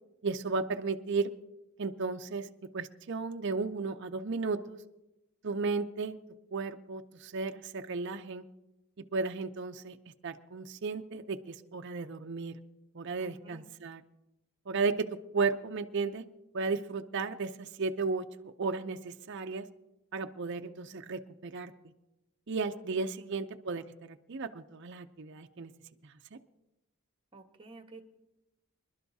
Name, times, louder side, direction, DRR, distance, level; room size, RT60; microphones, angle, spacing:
voice 1, 0.2-1.3 1.8-2.5 2.7-4.8 5.4-6.2 6.5-8.4 9.1-10.0 10.2-12.6 12.9-14.0 14.7-16.2 16.5-19.7 20.1-21.7 22.5-25.7 26.0-26.4, right 4 dB, 55° right, 6 dB, 0.5 m, -34 dB
voice 2, 13.2-13.7 23.2-23.3 27.3-28.0, right 3 dB, 25° right, 6 dB, 1.2 m, -52 dB
25.5 x 12.0 x 2.7 m, 0.94 s
head